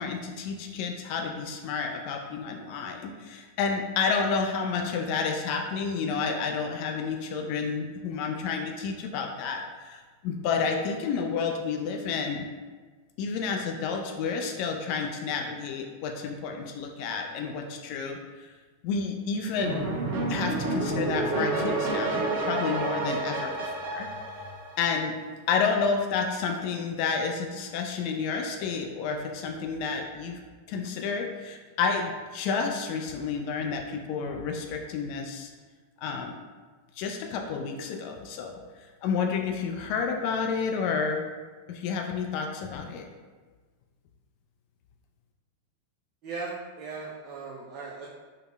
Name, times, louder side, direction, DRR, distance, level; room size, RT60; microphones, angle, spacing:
voice 1, 0.0-12.5 13.2-18.5 18.8-19.9 20.3-24.1 24.8-25.2 25.5-30.4 30.7-35.5 36.0-36.4 37.0-38.5 39.0-41.2 41.7-43.1, left 5 dB, 45° left, 3 dB, 0.3 m, -30 dB
sound 1, 19.6-25.1, right 2 dB, 55° right, 0.9 m, -29 dB
voice 2, 46.2-48.1, right 4 dB, 40° right, -4 dB, 0.4 m, -38 dB
3.7 x 2.7 x 2.2 m, 1.4 s
figure-of-eight pair, 90°, 0 cm